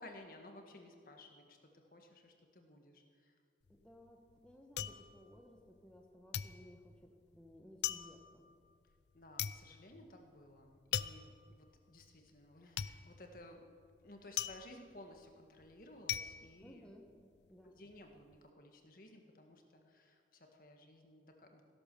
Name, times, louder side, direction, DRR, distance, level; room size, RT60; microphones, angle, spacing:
voice 1, 0.0-3.3 9.1-13.6 14.0-16.9 17.6-21.6, left 1 dB, 50° left, 3 dB, 1.7 m, -57 dB
sound 1, 3.6-6.0 6.3-17.5 17.8-18.4, left 10 dB, 70° left, 0.5 m, -42 dB
voice 2, 3.7-8.5 16.6-17.8, equal, 5° left, 1 dB, 1.2 m, -59 dB
16.5 x 11.5 x 6.8 m, 2.1 s
head